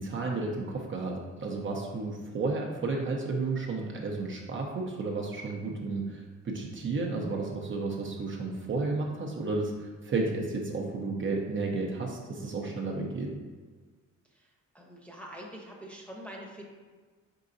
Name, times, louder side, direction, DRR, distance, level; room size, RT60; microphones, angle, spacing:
voice 1, 0.0-13.3, right 3 dB, 40° right, -1 dB, 0.7 m, -32 dB
voice 2, 14.2-16.6, equal, 5° left, -2 dB, 0.9 m, -45 dB
4.6 x 3.7 x 2.6 m, 1.4 s
cardioid pair, 90°, 30 cm